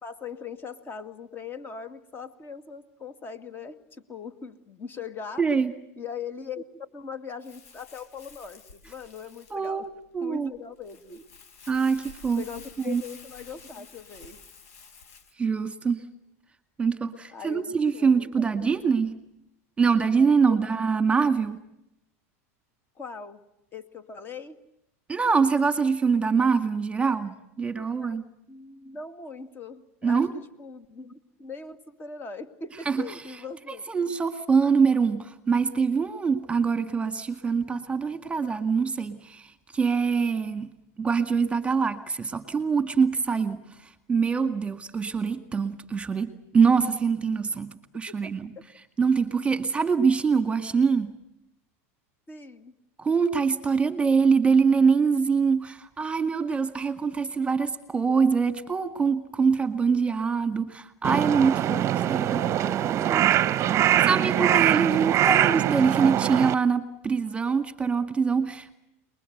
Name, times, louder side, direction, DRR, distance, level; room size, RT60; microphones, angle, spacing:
voice 1, 0.0-5.5 6.0-9.9 10.2-11.2 12.4-14.4 17.3-18.9 20.5-20.6 23.0-23.5 23.7-24.6 27.8-33.8 48.1-48.6 52.3-52.7 61.7-63.9, left 5 dB, 25° left, 11 dB, 2.3 m, -41 dB
voice 2, 5.4-5.7 9.5-10.5 11.7-12.4 12.9-13.0 15.4-16.0 16.8-19.2 19.8-21.6 25.1-28.2 30.0-30.3 32.9-33.0 33.9-39.4 39.7-40.7 41.0-43.6 44.1-48.5 49.0-51.1 53.0-61.8 62.1-62.4 64.0-68.7, right 5 dB, 15° right, 10 dB, 2.1 m, -24 dB
Crumpling crinkling, 7.4-15.3, left 5 dB, 80° left, 5.4 m, -50 dB
Crow, 61.0-66.6, right 12 dB, 35° right, 0.9 m, -23 dB
28.5 x 21.5 x 8.0 m, 0.82 s
supercardioid pair, 115°, 8 cm